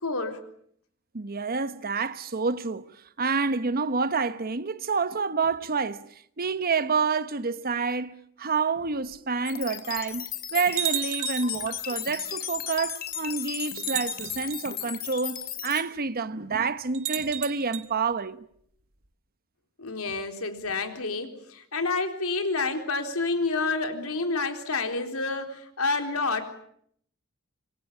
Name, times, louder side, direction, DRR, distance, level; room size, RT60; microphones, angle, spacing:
voice 1, 0.0-0.4 19.8-26.4, left 3 dB, 75° left, 3.9 m, -29 dB
voice 2, 1.1-2.9 3.2-6.1 6.4-18.5, right 4 dB, 45° right, 1.1 m, -28 dB
sound 1, 9.1-9.2 10.0-10.1 10.8-11.6 12.8-12.9 13.8-14.6 16.9-17.9, right 13 dB, 65° right, 1.8 m, -32 dB
sound 2, 9.4-15.8, left 10 dB, 45° left, 3.2 m, -35 dB
26.0 x 22.0 x 8.5 m
head